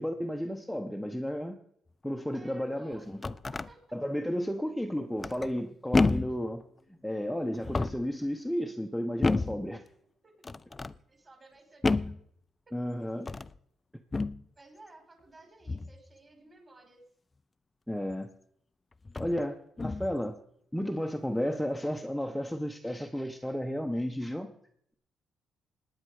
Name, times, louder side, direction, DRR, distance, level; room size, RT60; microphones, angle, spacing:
voice 1, 0.0-1.6 2.0-3.2 3.9-6.6 7.0-9.8 12.7-13.3 17.9-18.3 19.2-19.6 19.8-20.4 20.7-24.5, equal, ahead, 4 dB, 1.0 m, -33 dB
voice 2, 2.3-3.1 3.5-3.8 6.1-6.3 10.2-10.3 11.1-12.1 12.7-12.8 14.5-17.0, right 2 dB, 30° right, 3 dB, 4.9 m, -55 dB
sound 1, 2.9-3.7 5.2-5.6 5.9-6.4 7.5-8.1 9.2-9.6 10.4-11.0 11.8-12.2 13.2-13.6 14.1-14.4 15.7-16.0 18.1-18.2 19.1-19.4 19.8-20.2, left 3 dB, 25° left, 0.5 m, -29 dB
18.0 x 9.8 x 4.9 m, 0.69 s
cardioid pair, 90°, 0 cm